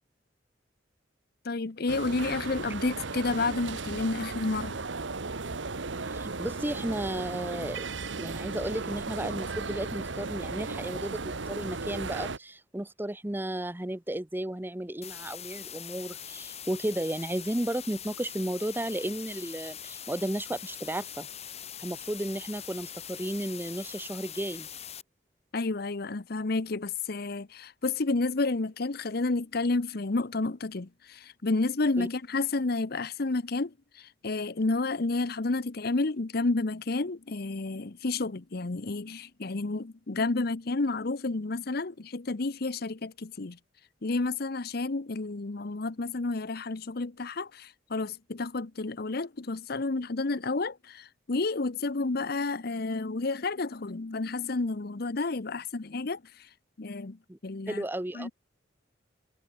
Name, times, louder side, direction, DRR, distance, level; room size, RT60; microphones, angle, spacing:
voice 1, 1.4-4.8 25.5-43.6 44.0-56.5 56.8-57.9 58.1-58.3, left 3 dB, 55° left, 0.9 m, -30 dB
sound 1, 1.9-12.4, right 3 dB, 85° right, 1.4 m, -36 dB
voice 2, 6.1-7.8 8.2-21.3 21.8-24.7 32.0-32.1 57.3-57.4 57.7-58.3, right 1 dB, 10° right, 0.8 m, -34 dB
sound 2, 15.0-25.0, left 9 dB, 35° left, 3.1 m, -42 dB
head